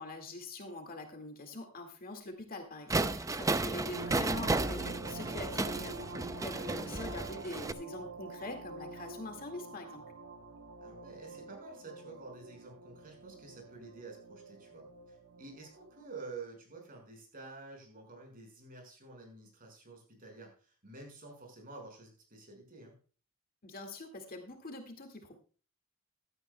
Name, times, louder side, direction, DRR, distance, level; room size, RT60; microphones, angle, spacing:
voice 1, 0.0-10.0 23.6-25.4, left 2 dB, 45° left, 4 dB, 1.9 m, -44 dB
sound 1, 2.9-7.7, right 2 dB, 15° right, 0.5 m, -33 dB
sound 2, 3.9-16.0, right 2 dB, 70° right, 1.3 m, -47 dB
voice 2, 6.5-7.1 10.8-22.9, right 3 dB, 40° right, 2 dB, 5.3 m, -50 dB
16.0 x 12.5 x 2.2 m, 0.37 s
head